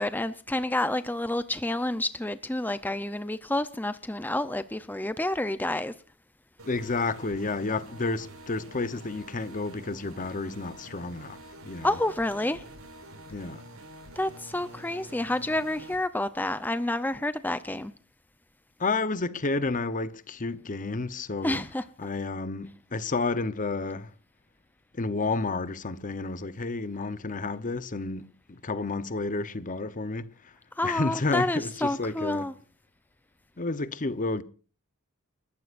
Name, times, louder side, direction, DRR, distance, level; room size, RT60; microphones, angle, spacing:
voice 1, 0.0-5.9 11.8-12.6 14.2-17.9 21.4-21.8 30.8-32.5, left 1 dB, 10° left, 0.6 m, -29 dB
sound 1, 6.6-16.0, right 1 dB, 80° right, 7.9 m, -47 dB
voice 2, 6.7-11.9 13.3-13.6 18.8-21.6 22.0-24.1 24.9-30.5 30.8-32.5 33.6-34.4, left 3 dB, 40° left, 0.9 m, -31 dB
29.5 x 14.5 x 2.6 m
head